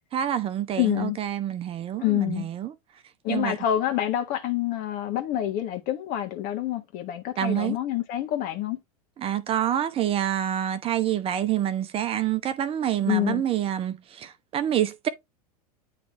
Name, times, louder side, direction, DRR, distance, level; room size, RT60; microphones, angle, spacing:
voice 1, 0.1-2.7 3.3-3.6 7.4-7.8 9.2-15.1, right 11 dB, 30° right, 0.6 m, -27 dB
voice 2, 0.8-1.2 2.0-2.5 3.2-8.8 13.1-13.4, left 12 dB, 45° left, 1.4 m, -27 dB
9.6 x 3.2 x 3.1 m
figure-of-eight pair, 85°, 20 cm